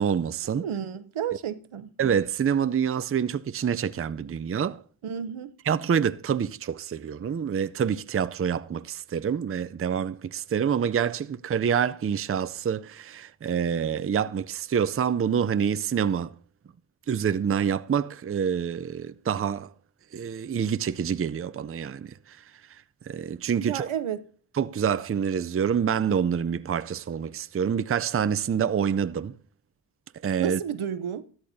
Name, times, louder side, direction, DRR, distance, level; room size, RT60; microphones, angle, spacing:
voice 1, 0.0-0.6 2.0-4.8 5.7-16.3 17.1-19.7 20.1-22.4 23.1-23.9 24.6-29.4 30.2-30.6, right 7 dB, 30° right, 0.5 m, -27 dB
voice 2, 0.6-1.9 5.0-5.5 23.6-24.2 30.4-31.2, right 9 dB, 85° right, 0.8 m, -31 dB
13.5 x 13.0 x 2.7 m
cardioid pair, 40°, 48 cm